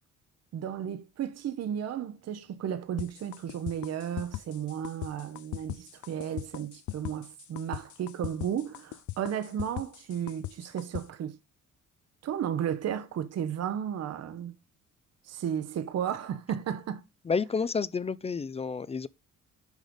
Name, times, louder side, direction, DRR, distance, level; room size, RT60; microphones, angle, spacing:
voice 1, 0.5-11.4 12.2-14.5 15.2-17.0, right 9 dB, 55° right, 0.8 m, -34 dB
sound 1, 3.0-11.0, left 15 dB, 75° left, 0.6 m, -38 dB
voice 2, 17.2-19.1, left 5 dB, 20° left, 0.3 m, -30 dB
6.4 x 4.9 x 5.1 m
cardioid pair, 90°, 30 cm